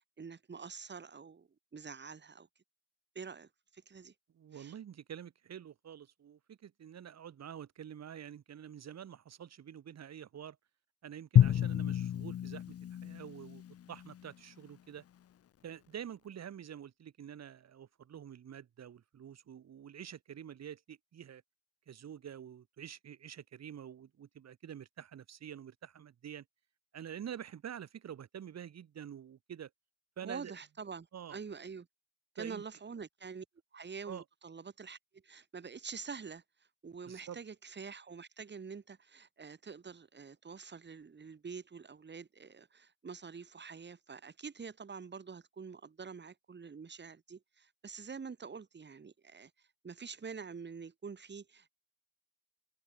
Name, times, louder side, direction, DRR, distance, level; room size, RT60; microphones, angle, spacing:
voice 1, 0.0-2.5 3.2-4.1 4.5-4.7 30.2-31.9 32.4-33.5 33.7-51.7, right 5 dB, 35° right, 5.4 m, -46 dB
voice 2, 4.3-10.6 11.0-12.7 13.0-15.0 15.6-21.4 21.9-26.4 26.9-29.7 30.2-30.5 31.1-31.4 32.4-32.6 34.1-34.2 37.1-37.4, right 9 dB, 60° right, 6.1 m, -47 dB
Drum, 11.4-14.3, left 10 dB, 50° left, 0.9 m, -29 dB
cardioid pair, 90°, 30 cm